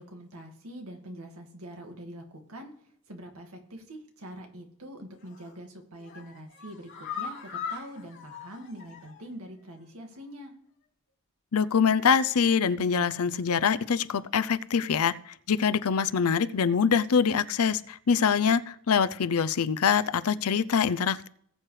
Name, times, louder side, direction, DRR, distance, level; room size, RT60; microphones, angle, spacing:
voice 1, 0.0-2.2 2.5-10.5, equal, 75° right, 3 dB, 2.0 m, -44 dB
sound 1, 5.2-5.6 6.0-9.4 9.7-9.8 10.1-10.2, left 7 dB, 55° left, 3.5 m, -40 dB
voice 2, 11.5-21.3, left 6 dB, 80° left, 15 dB, 0.5 m, -24 dB
19.0 x 7.7 x 3.3 m, 0.65 s
head